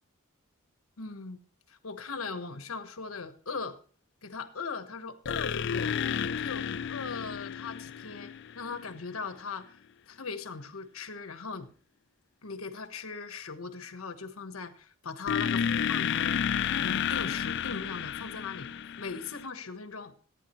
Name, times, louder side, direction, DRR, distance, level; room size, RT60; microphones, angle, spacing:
voice 1, 1.0-1.4 1.7-3.8 4.2-6.0 6.4-9.8 10.1-11.7 12.4-18.7 19.0-20.1, left 5 dB, 90° left, 9 dB, 1.2 m, -39 dB
sound 1, 5.2-8.9 15.3-19.5, left 8 dB, 60° left, 0.4 m, -31 dB
15.0 x 9.3 x 3.0 m, 0.41 s
head